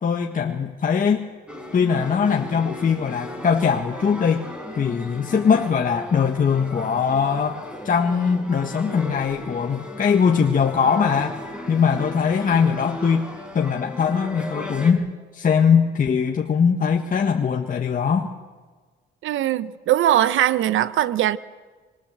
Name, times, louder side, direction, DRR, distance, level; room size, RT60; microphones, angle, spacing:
voice 1, 0.0-1.3 1.7-4.4 4.8-11.4 11.7-13.3 13.5-15.0 15.3-18.3, left 6 dB, 45° left, 1.7 m, -21 dB
sound 1, 1.5-14.9, left 1 dB, 5° right, 5.8 m, -36 dB
voice 2, 19.2-21.4, right 12 dB, 80° right, 0.9 m, -20 dB
26.0 x 22.5 x 7.6 m
cardioid pair, 90°, 20 cm